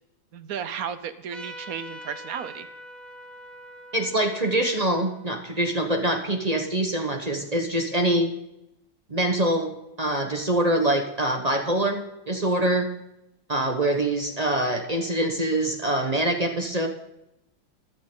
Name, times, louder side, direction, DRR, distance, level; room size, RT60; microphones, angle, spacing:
voice 1, 0.3-2.7, right 7 dB, 60° right, 11 dB, 0.9 m, -34 dB
Trumpet, 1.3-6.4, equal, ahead, 0.9 m, -45 dB
voice 2, 3.9-8.3 9.1-12.9 13.5-16.9, right 1 dB, 30° right, 4 dB, 0.7 m, -24 dB
15.5 x 11.0 x 3.8 m, 0.85 s
omnidirectional pair, 2.4 m